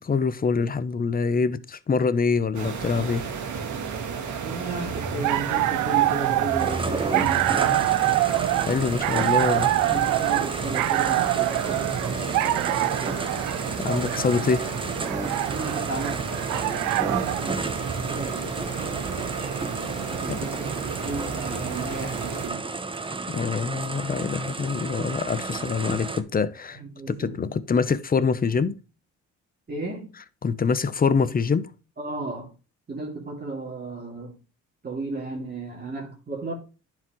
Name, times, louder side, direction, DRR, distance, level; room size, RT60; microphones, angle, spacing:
voice 1, 0.0-3.3 8.6-10.0 13.8-14.7 20.3-20.4 23.3-26.8 27.1-28.8 30.4-31.7, left 5 dB, 30° left, 0.7 m, -25 dB
sound 1, 2.5-22.5, right 6 dB, 70° right, 2.0 m, -32 dB
voice 2, 4.4-7.9 9.9-13.6 15.5-16.8 17.2-22.6 26.7-27.5 29.7-30.1 32.0-32.5 32.9-34.4 34.8-36.5, right 2 dB, 30° right, 2.7 m, -35 dB
sound 2, 5.0-17.5, right 16 dB, 90° right, 0.5 m, -25 dB
sound 3, 6.6-26.2, right 3 dB, 15° right, 0.9 m, -33 dB
11.0 x 4.9 x 3.0 m
cardioid pair, 90°, 30 cm